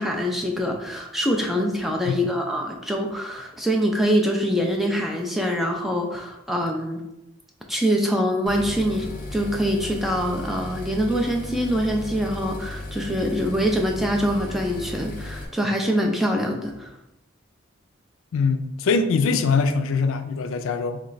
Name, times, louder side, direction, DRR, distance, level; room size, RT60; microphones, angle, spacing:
voice 1, 0.0-7.0 7.7-16.9, equal, ahead, 1 dB, 0.4 m, -24 dB
sound 1, 8.5-15.5, left 2 dB, 40° left, 0.7 m, -35 dB
voice 2, 18.3-21.0, left 4 dB, 70° left, 9 dB, 0.4 m, -22 dB
3.2 x 3.2 x 3.9 m, 0.91 s
head